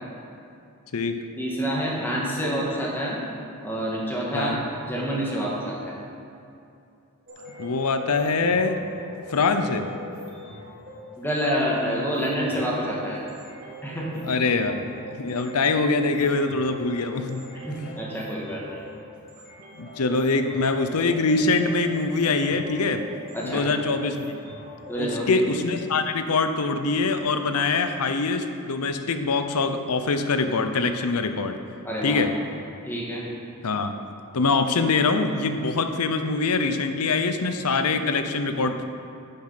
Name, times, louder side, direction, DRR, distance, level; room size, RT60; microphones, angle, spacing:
voice 1, 1.4-3.2 3.6-5.9 11.2-13.3 13.8-14.2 17.5-18.8 23.3-23.7 24.9-25.4 31.8-32.2 32.9-33.2, equal, 10° left, -4 dB, 1.9 m, -28 dB
sound 1, 7.3-25.1, equal, 40° right, 2.1 m, -42 dB
voice 2, 7.6-8.8 9.3-9.9 14.2-14.9 15.2-17.4 19.8-23.1 23.4-24.4 25.0-31.6 32.0-32.3 33.6-33.9 34.3-38.8, left 3 dB, 85° left, 8 dB, 0.7 m, -24 dB
9.9 x 7.4 x 5.8 m, 2.5 s
head